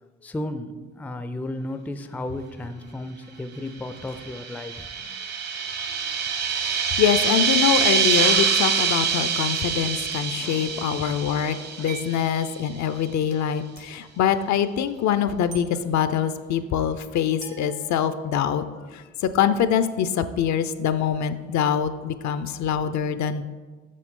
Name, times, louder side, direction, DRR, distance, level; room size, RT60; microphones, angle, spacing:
voice 1, 0.0-5.2 9.7-9.9 10.4-12.0, left 1 dB, 5° left, 10 dB, 0.4 m, -35 dB
sound 1, 4.1-12.4, right 6 dB, 60° right, 1.1 m, -25 dB
voice 2, 6.6-18.6 18.9-23.5, left 8 dB, 70° left, 12 dB, 0.5 m, -24 dB
sound 2, 10.0-10.1 11.9-12.2 13.8-13.9 15.5-15.7 17.4-18.5, right 7 dB, 75° right, 1.3 m, -42 dB
7.5 x 6.0 x 3.7 m, 1.3 s
cardioid pair, 90°, 30 cm